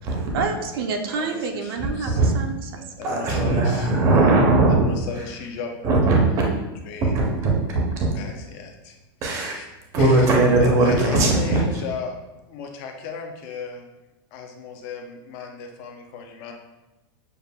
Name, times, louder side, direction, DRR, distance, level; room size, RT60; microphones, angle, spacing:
voice 1, 0.3-2.9, right 4 dB, 65° right, 4 dB, 0.5 m, -28 dB
voice 2, 1.1-2.2 3.0-3.9 4.7-5.7 6.0-6.4 6.8-7.1 8.1-9.0 9.3-9.7 10.0-10.3 10.6-12.2 12.5-13.9 14.3-16.5, left 5 dB, 35° left, 3 dB, 0.5 m, -35 dB
voice 3, 1.8-2.3 3.0-4.9 5.8-6.2 7.1-8.1 9.2-9.6 9.9-11.8, right 2 dB, 25° right, -1 dB, 0.6 m, -19 dB
6.7 x 2.5 x 2.2 m, 1.1 s
supercardioid pair, 170°, 13 cm